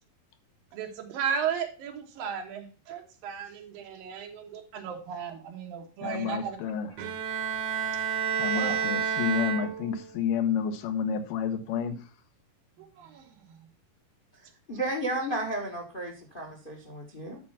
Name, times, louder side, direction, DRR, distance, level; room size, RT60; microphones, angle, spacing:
voice 1, 0.7-6.6 8.5-8.9 12.8-13.3, right 7 dB, 90° right, 3.2 m, -35 dB
voice 2, 6.0-6.9 8.4-12.1, left 7 dB, 80° left, 2.5 m, -30 dB
Bowed string instrument, 7.0-10.1, right 7 dB, 70° right, 2.1 m, -30 dB
voice 3, 14.3-17.4, right 1 dB, 45° left, 0.7 m, -33 dB
10.5 x 4.5 x 5.6 m
omnidirectional pair, 3.9 m